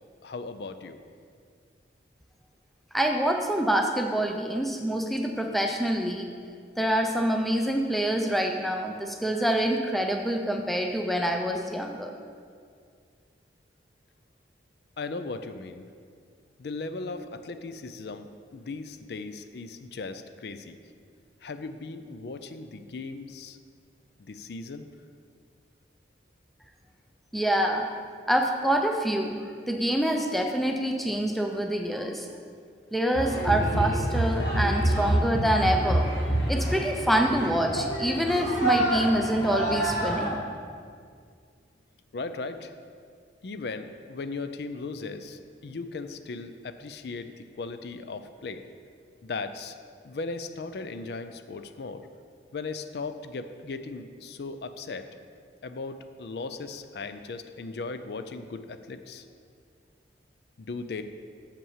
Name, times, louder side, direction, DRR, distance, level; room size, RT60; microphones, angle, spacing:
voice 1, 0.2-1.0 15.0-15.9 16.6-20.8 21.4-23.6 24.2-24.9 42.1-42.7 43.4-48.6 49.2-49.8 50.0-52.0 52.5-55.1 55.6-59.3 60.6-61.0, left 3 dB, 60° left, 9 dB, 0.4 m, -37 dB
voice 2, 2.9-6.3 6.8-12.1 27.3-27.9 28.3-32.3 32.9-36.1 36.5-40.4, right 1 dB, ahead, 3 dB, 0.5 m, -26 dB
sound 1, 33.1-40.3, right 1 dB, 75° left, 1.8 m, -27 dB
6.8 x 5.5 x 7.3 m, 2.1 s
head